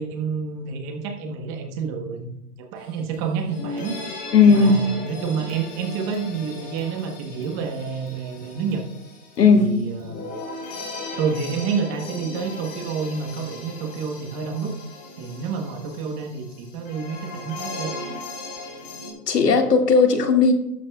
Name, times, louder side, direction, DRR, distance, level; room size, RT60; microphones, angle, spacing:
voice 1, 0.0-4.0 4.5-8.8 9.5-10.3 11.1-14.7 15.2-17.9, right 5 dB, 20° right, 4 dB, 1.0 m, -29 dB
sound 1, 2.8-2.9 3.1-19.1, left 2 dB, 20° left, 2.9 m, -37 dB
voice 2, 4.3-4.8 9.4-9.8 19.3-20.5, left 4 dB, 85° left, 4 dB, 2.0 m, -15 dB
12.5 x 11.5 x 2.3 m, 0.85 s
hypercardioid pair, 150°, 47 cm